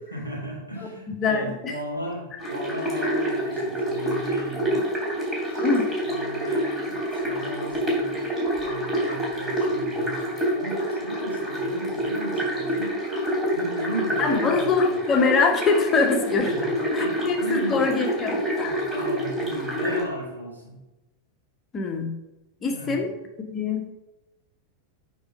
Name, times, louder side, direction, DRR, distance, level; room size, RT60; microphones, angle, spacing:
voice 1, 0.1-4.9 5.5-13.0 13.5-15.0 16.4-16.7 17.0-17.8 18.6-20.7 22.6-23.0, right 1 dB, 85° right, -4 dB, 3.2 m, -35 dB
voice 2, 1.2-1.7 5.6-5.9 14.2-16.6 16.9-18.8 21.7-22.1 22.6-23.1 23.4-23.9, left 4 dB, 25° left, 3 dB, 1.3 m, -24 dB
sound 1, 2.4-20.0, equal, 10° right, 3.3 m, -27 dB
8.6 x 5.1 x 4.8 m, 1.0 s
figure-of-eight pair, 90°, 0 cm